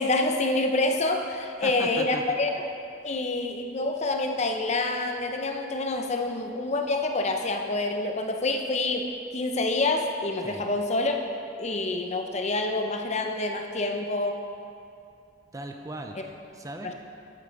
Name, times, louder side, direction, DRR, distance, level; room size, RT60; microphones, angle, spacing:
voice 1, 0.0-2.6 3.0-11.2 11.6-14.3, left 2 dB, 35° left, 4 dB, 0.7 m, -27 dB
voice 2, 1.6-2.4 10.4-10.6 15.5-16.9, right 2 dB, 20° right, 3 dB, 0.5 m, -38 dB
9.1 x 7.9 x 5.2 m, 2.5 s
head